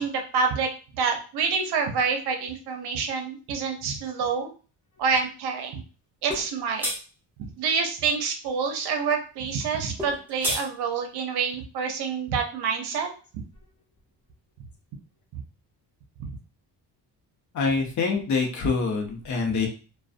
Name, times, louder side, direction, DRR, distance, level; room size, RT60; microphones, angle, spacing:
voice 1, 0.0-4.5 5.0-5.8 6.2-6.9 7.6-13.1 16.2-16.3, right 5 dB, 70° right, 4 dB, 0.7 m, -27 dB
sound 1, 6.3-6.5 6.8-7.0 10.0-10.6, equal, 5° right, 0.7 m, -28 dB
voice 2, 17.5-19.7, left 4 dB, 45° left, 2 dB, 0.7 m, -25 dB
2.4 x 2.2 x 2.4 m, 0.36 s
cardioid pair, 155°, 40 cm